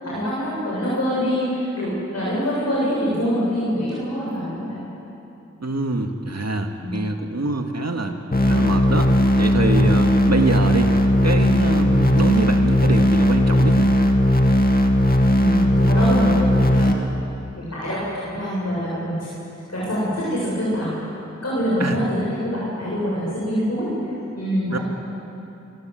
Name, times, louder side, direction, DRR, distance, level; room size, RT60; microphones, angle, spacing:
voice 1, 0.0-4.8 6.8-7.1 15.4-17.1 17.6-19.3 19.7-20.9 21.4-23.9 24.3-24.8, equal, 60° left, -8 dB, 7.8 m, -25 dB
voice 2, 5.6-8.2 8.4-10.9 11.2-13.9 21.8-22.0 24.7-24.8, right 2 dB, 60° right, 4 dB, 2.2 m, -24 dB
sound 1, 8.3-16.9, left 1 dB, 30° left, 2.3 m, -17 dB
24.5 x 24.5 x 7.9 m, 2.9 s
wide cardioid pair, 60°, 29 cm